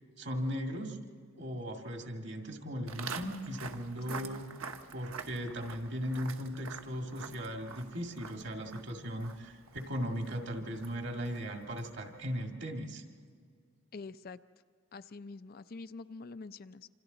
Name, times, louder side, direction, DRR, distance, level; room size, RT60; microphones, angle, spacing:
voice 1, 0.2-1.0 1.4-4.5 4.9-13.1, equal, 55° right, 3 dB, 2.0 m, -37 dB
Walk footsteps, 2.9-12.1, right 5 dB, 80° right, 1.1 m, -47 dB
voice 2, 4.1-4.4 13.9-14.4 14.9-16.9, left 3 dB, 45° left, 11 dB, 0.5 m, -46 dB
27.5 x 26.0 x 4.0 m, 2.2 s
head